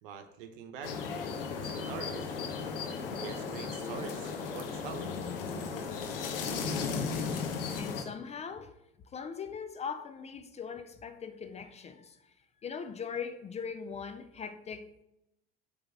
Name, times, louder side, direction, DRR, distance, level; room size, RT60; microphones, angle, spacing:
voice 1, 0.0-1.0 1.5-2.4 3.2-5.2, right 7 dB, 60° right, 1.0 m, -44 dB
sound 1, 0.8-8.0, left 5 dB, 65° left, 1.0 m, -35 dB
voice 2, 7.8-8.8 9.1-12.3 12.6-15.0, left 6 dB, 20° left, 0.5 m, -40 dB
7.8 x 3.5 x 6.3 m
figure-of-eight pair, 70°, 30 cm